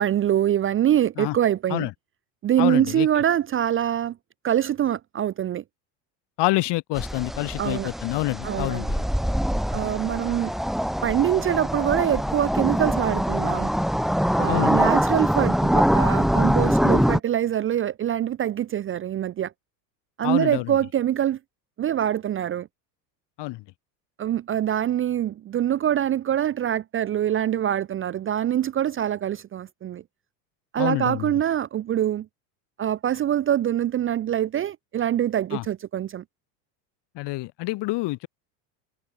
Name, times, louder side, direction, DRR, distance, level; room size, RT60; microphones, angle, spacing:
voice 1, 0.0-1.9 2.4-4.1 4.4-5.6 7.6-7.9 8.4-8.8 9.7-10.5 11.0-13.7 14.4-19.5 20.2-21.4 21.8-22.7 24.2-30.0 30.7-32.3 32.8-36.2, right 11 dB, 25° right, 0.5 m, -24 dB
voice 2, 2.6-3.1 6.4-9.0 9.7-9.8 14.5-14.9 20.2-20.8 23.4-23.6 30.8-31.4 35.5-35.7 37.1-38.3, left 20 dB, 55° left, 2.6 m, -27 dB
sound 1, 7.0-17.2, equal, ahead, 2.5 m, -23 dB
hypercardioid pair, 90°, 49 cm